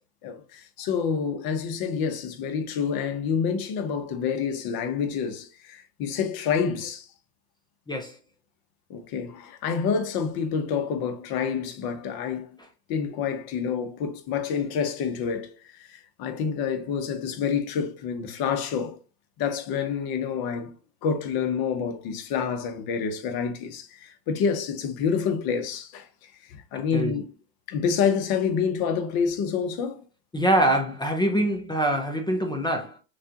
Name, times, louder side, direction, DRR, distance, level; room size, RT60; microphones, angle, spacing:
voice 1, 0.2-7.1 8.9-12.5 12.9-15.5 15.8-19.0 19.4-20.7 21.0-26.1 26.5-27.3 27.7-30.0, left 6 dB, 45° left, 1.1 m, -28 dB
voice 2, 26.7-27.2 30.3-33.0, right 1 dB, 10° left, 0.6 m, -24 dB
6.5 x 2.4 x 2.9 m
supercardioid pair, 115°, 50 cm